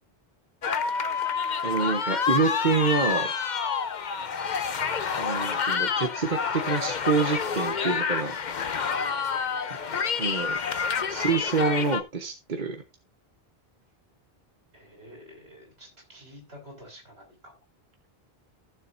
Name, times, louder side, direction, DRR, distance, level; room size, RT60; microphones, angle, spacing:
sound 1, 0.6-12.0, left 6 dB, 50° left, 0.9 m, -28 dB
voice 1, 1.6-3.3 5.2-8.3 8.8-8.9 10.2-10.6 11.1-12.8, right 4 dB, 50° right, 5 dB, 1.2 m, -27 dB
voice 2, 9.3-9.6 14.7-17.5, equal, 75° right, 2 dB, 5.2 m, -49 dB
15.5 x 7.0 x 2.6 m, 0.23 s
omnidirectional pair, 1.1 m